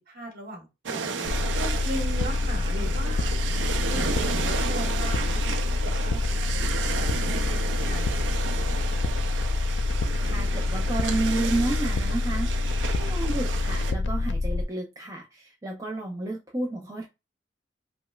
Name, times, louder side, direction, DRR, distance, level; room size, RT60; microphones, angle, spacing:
voice 1, 0.1-1.1 1.6-3.3 3.9-9.0, right 1 dB, 55° right, 1 dB, 1.5 m, -39 dB
sound 1, 0.9-13.9, right 5 dB, 80° right, 0.5 m, -33 dB
sound 2, 1.2-14.6, left 3 dB, 70° left, 0.4 m, -26 dB
voice 2, 10.2-17.1, right 2 dB, 20° right, 0 dB, 0.5 m, -31 dB
5.1 x 2.1 x 2.3 m, 0.25 s
head